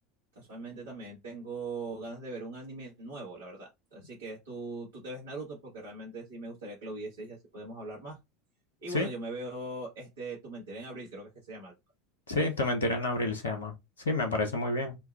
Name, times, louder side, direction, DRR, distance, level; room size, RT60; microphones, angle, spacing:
voice 1, 0.3-8.2 8.8-11.7, right 2 dB, 85° right, 1.5 m, -41 dB
voice 2, 12.3-13.7 14.0-15.0, left 2 dB, 80° left, 0.7 m, -29 dB
4.2 x 2.2 x 2.3 m
figure-of-eight pair, 80°, 0 cm